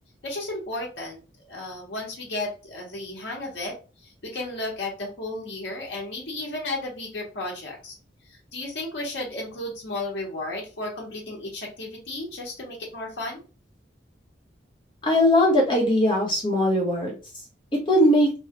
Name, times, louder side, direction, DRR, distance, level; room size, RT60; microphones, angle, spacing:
voice 1, 0.2-8.0 8.3-13.4, left 2 dB, 75° left, -2 dB, 1.0 m, -34 dB
voice 2, 15.0-17.1 17.7-18.3, left 1 dB, 25° left, -2 dB, 1.0 m, -20 dB
3.0 x 2.3 x 2.9 m, 0.33 s
head